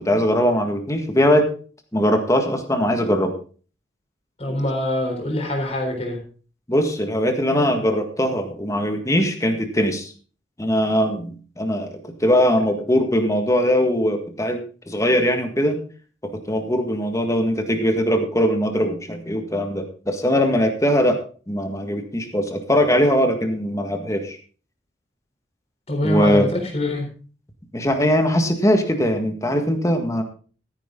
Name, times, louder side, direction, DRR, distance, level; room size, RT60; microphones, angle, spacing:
voice 1, 0.0-1.5 1.9-3.3 6.7-10.1 10.6-14.6 14.9-15.8 16.2-21.2 21.5-24.4 26.0-26.5 27.7-30.2, equal, 15° left, 5 dB, 1.7 m, -20 dB
voice 2, 4.4-6.2 25.9-27.1, left 1 dB, 35° left, 0 dB, 3.9 m, -24 dB
14.0 x 9.9 x 3.8 m, 0.39 s
head